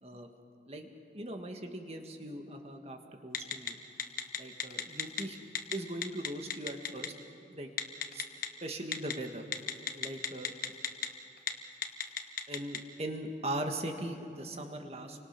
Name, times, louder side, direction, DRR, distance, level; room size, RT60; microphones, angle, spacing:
voice 1, 1.1-3.8 4.4-5.4 5.7-7.1 7.5-7.7 8.1-8.2 8.6-9.5 9.9-10.5 12.5-15.2, right 1 dB, 35° right, 4 dB, 1.8 m, -39 dB
Telephone, 3.3-3.7 4.0-5.2 5.5-5.7 6.0-7.1 7.8-8.5 8.9-9.1 9.5-11.1 11.4-11.5 11.8-12.8, left 9 dB, 50° left, 1.2 m, -32 dB
29.5 x 24.5 x 6.0 m, 2.7 s
head